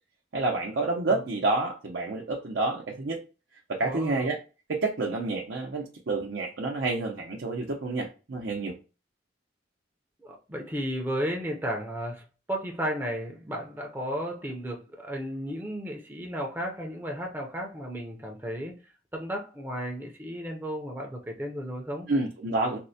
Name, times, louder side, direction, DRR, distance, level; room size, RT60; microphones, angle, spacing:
voice 1, 0.3-3.2 3.7-4.4 4.7-8.7 22.1-22.8, right 3 dB, 75° right, 0.6 m, -29 dB
voice 2, 3.8-4.3 10.2-18.8 19.1-22.1, equal, 10° right, 0.5 m, -34 dB
4.2 x 2.1 x 2.6 m
head